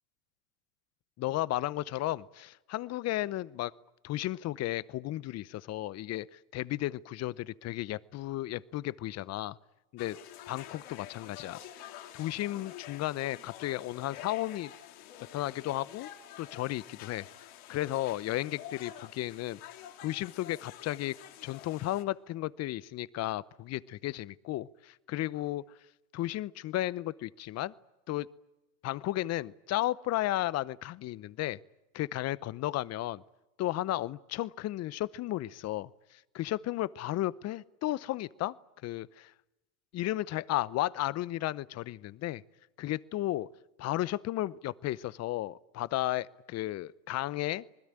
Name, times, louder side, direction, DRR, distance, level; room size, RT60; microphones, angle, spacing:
voice 1, 1.2-3.7 4.0-9.6 9.9-10.2 10.5-14.7 15.3-16.1 16.4-19.6 20.0-21.2 21.4-25.6 26.1-27.7 28.1-28.3 28.8-31.6 31.9-33.2 33.6-38.5 38.8-39.3 39.9-42.4 42.8-43.5 43.8-47.6, left 15 dB, 35° left, 20 dB, 0.8 m, -34 dB
sound 1, 10.0-22.0, left 11 dB, 55° left, 2.8 m, -48 dB
27.0 x 20.5 x 9.0 m, 1.0 s
hypercardioid pair, 95°, 44 cm